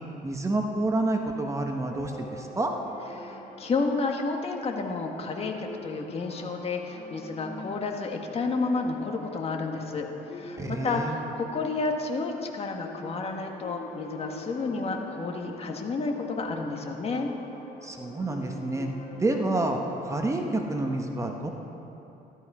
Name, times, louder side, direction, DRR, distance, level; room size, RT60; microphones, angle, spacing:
voice 1, 0.2-2.7 10.6-11.2 17.8-18.9 19.2-21.5, right 2 dB, 15° right, 3 dB, 1.1 m, -28 dB
sound 1, 1.8-21.0, left 2 dB, 60° left, 3.3 m, -45 dB
voice 2, 3.2-17.3, left 3 dB, 35° left, 2 dB, 1.6 m, -31 dB
14.5 x 12.5 x 4.9 m, 3.0 s
cardioid pair, 110°, 17 cm